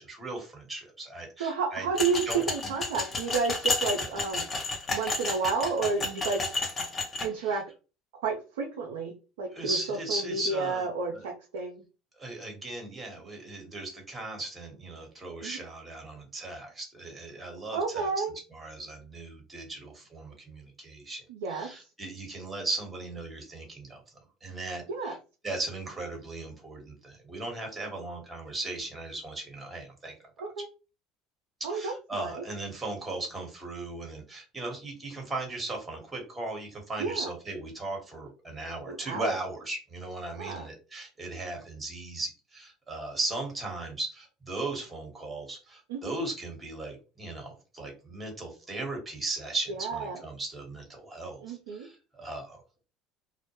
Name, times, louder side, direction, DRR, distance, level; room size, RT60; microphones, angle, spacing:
voice 1, 0.0-1.8 2.2-2.7 7.3-7.5 9.5-10.9 11.1-11.3 12.2-18.2 18.5-21.2 21.5-24.0 24.4-25.2 25.4-30.1 31.7-52.6, right 2 dB, 20° right, 1 dB, 1.2 m, -37 dB
voice 2, 1.4-4.5 4.9-6.4 7.2-7.6 8.2-11.8 15.4-15.6 17.7-18.3 21.3-21.7 24.9-25.1 30.4-30.7 31.6-32.4 37.0-37.3 38.9-39.4 40.3-40.7 45.9-46.1 49.8-50.2 51.4-51.9, right 4 dB, 85° right, 1 dB, 0.4 m, -31 dB
sound 1, 2.0-7.3, left 3 dB, 30° left, 0.8 m, -31 dB
2.1 x 2.0 x 2.9 m, 0.33 s
supercardioid pair, 90°, 0 cm